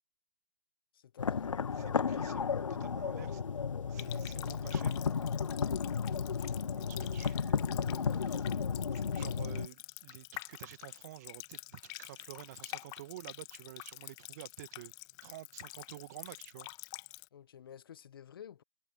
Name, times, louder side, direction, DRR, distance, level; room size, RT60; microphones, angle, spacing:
voice 1, 0.9-1.5 6.1-6.7 17.3-18.6, left 9 dB, 40° left, 0.9 m, -52 dB
sound 1, 1.2-9.7, left 6 dB, 65° left, 0.7 m, -33 dB
voice 2, 1.7-3.4 3.9-5.0 6.4-8.5 8.9-14.9 15.2-16.7, right 16 dB, 30° right, 1.3 m, -50 dB
Water tap faucet, 4.0-17.3, left 26 dB, 20° left, 1.4 m, -48 dB
figure-of-eight pair, 135°, 18 cm